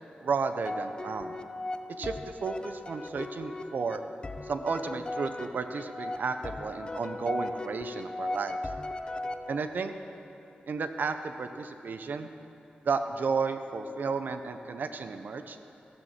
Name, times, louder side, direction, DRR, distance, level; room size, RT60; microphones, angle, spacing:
voice 1, 0.2-1.3 2.0-4.0 4.5-8.6 9.5-9.9 10.7-12.3 12.9-15.6, right 4 dB, 65° right, 8 dB, 0.6 m, -32 dB
sound 1, 0.6-9.9, left 2 dB, 30° left, 0.5 m, -38 dB
15.0 x 6.4 x 7.5 m, 2.9 s
wide cardioid pair, 105°, 3 cm